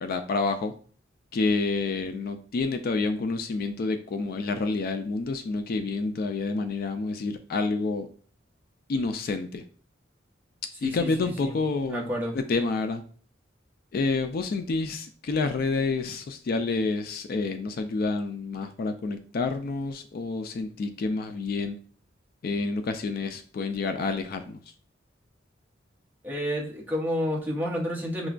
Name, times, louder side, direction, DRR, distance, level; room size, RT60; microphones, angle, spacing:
voice 1, 0.0-0.7 1.3-8.1 8.9-9.6 10.8-13.0 13.9-21.8 22.4-24.6, left 3 dB, 50° left, 7 dB, 0.3 m, -28 dB
voice 2, 10.8-11.5 11.9-12.3 26.2-28.3, equal, 10° right, -3 dB, 0.8 m, -30 dB
5.8 x 2.2 x 2.4 m, 0.43 s
head